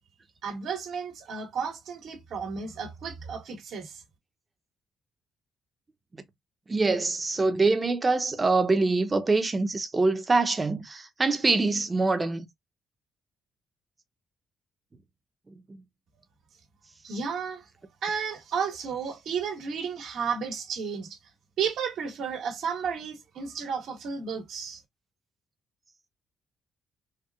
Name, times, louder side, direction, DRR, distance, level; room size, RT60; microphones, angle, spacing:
voice 1, 0.4-4.0 17.0-17.6 18.0-21.2 21.6-24.8, right 6 dB, 75° right, 1.5 m, -33 dB
voice 2, 6.7-12.5, right 3 dB, 25° right, 0.8 m, -24 dB
4.4 x 2.4 x 2.3 m
cardioid pair, 90°, 0 cm